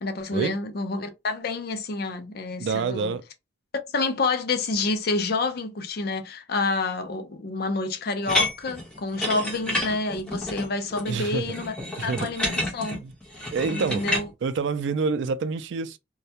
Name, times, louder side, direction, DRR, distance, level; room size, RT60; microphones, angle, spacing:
voice 1, 0.0-3.1 3.9-11.8 12.0-13.0 13.7-14.3, left 3 dB, 55° left, 0.5 m, -28 dB
voice 2, 2.6-3.2 11.0-11.5 12.0-12.3 13.0-13.1 13.5-14.1 14.4-16.0, right 5 dB, 70° right, 0.3 m, -27 dB
sound 1, 8.2-14.2, left 1 dB, 5° left, 0.8 m, -29 dB
2.3 x 2.1 x 2.7 m
head